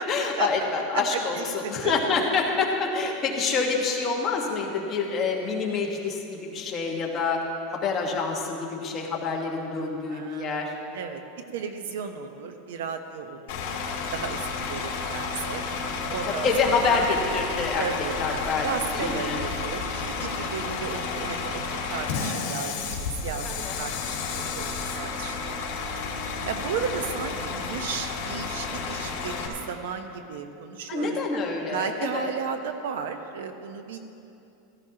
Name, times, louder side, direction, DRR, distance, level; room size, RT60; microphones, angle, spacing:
voice 1, 0.1-7.4 7.7-10.7 16.3-17.9 18.2-18.7 18.9-19.4 20.4-20.5 23.4-23.8 30.9-32.3, left 4 dB, 25° left, -1 dB, 1.5 m, -27 dB
voice 2, 1.1-1.9 10.1-11.2 11.5-13.6 13.9-15.6 16.1-17.1 17.8-23.4 23.8-26.0 26.3-31.2 31.7-34.0, right 6 dB, 80° right, 7 dB, 0.9 m, -34 dB
Bus / Idling, 13.5-29.5, left 4 dB, 60° left, 2.4 m, -31 dB
16.0 x 14.5 x 2.9 m, 2.7 s
supercardioid pair, 160°, 0 cm